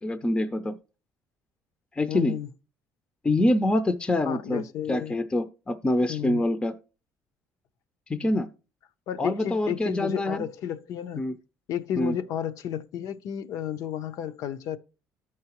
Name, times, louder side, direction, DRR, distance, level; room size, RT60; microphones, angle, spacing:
voice 1, 0.0-0.8 2.0-2.3 3.2-4.6 4.9-6.7 8.1-8.5 9.2-10.4 11.2-11.3 12.0-12.2, left 1 dB, 15° left, 0.5 m, -25 dB
voice 2, 2.1-2.5 4.2-5.1 6.1-6.4 9.1-11.2 11.7-14.8, left 9 dB, 70° left, 0.6 m, -32 dB
13.0 x 4.8 x 3.0 m
cardioid pair, 120°, 6 cm